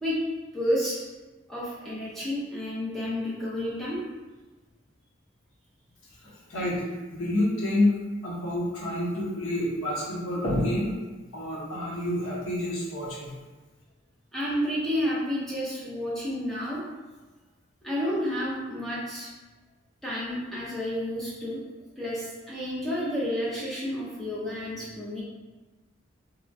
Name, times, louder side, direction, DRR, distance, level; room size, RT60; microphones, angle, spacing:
voice 1, 0.5-1.0 1.5-4.0 14.3-16.8 17.8-19.3 20.0-21.6 22.0-25.2, equal, ahead, -8 dB, 0.6 m, -30 dB
voice 2, 6.2-6.8 7.1-7.9 8.2-10.9 11.3-13.4, left 1 dB, 85° left, -5 dB, 0.8 m, -28 dB
2.9 x 2.2 x 2.6 m, 1.2 s
head